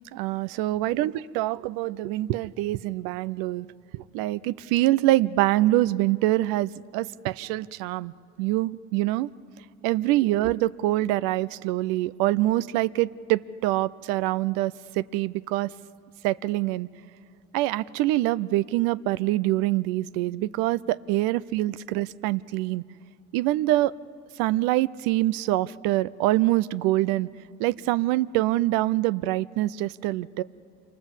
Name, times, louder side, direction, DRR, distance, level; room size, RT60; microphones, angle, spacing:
voice 1, 0.1-3.7 3.9-8.1 8.4-9.3 9.8-15.7 16.2-16.9 17.5-22.8 23.3-23.9 24.4-27.3 27.6-30.4, right 16 dB, 90° right, 17 dB, 0.5 m, -25 dB
27.5 x 25.0 x 7.4 m, 2.5 s
supercardioid pair, 60°, 34 cm